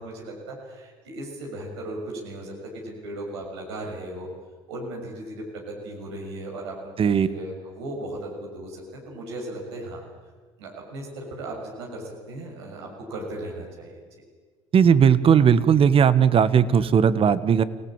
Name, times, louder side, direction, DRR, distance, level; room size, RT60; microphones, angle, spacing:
voice 1, 0.0-4.3 4.7-10.0 10.6-14.1, right 1 dB, 90° right, -1 dB, 6.7 m, -36 dB
voice 2, 14.7-17.6, right 7 dB, 40° right, 14 dB, 1.6 m, -17 dB
29.5 x 18.0 x 9.0 m, 1.5 s
hypercardioid pair, 75°, 14 cm